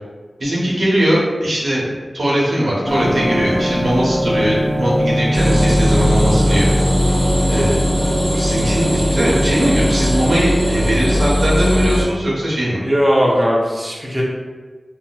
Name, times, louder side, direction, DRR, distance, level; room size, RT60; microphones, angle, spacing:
voice 1, 0.4-6.7 6.9-7.1 7.5-7.8 8.3-12.8, right 1 dB, 80° right, -6 dB, 0.8 m, -20 dB
sound 1, 2.9-10.0, equal, 45° left, 0.5 m, -21 dB
sound 2, 5.3-12.0, equal, ahead, 1.2 m, -18 dB
voice 2, 12.8-14.2, equal, 15° right, -4 dB, 0.7 m, -17 dB
4.0 x 2.1 x 2.2 m, 1.4 s
wide cardioid pair, 60°, 0 cm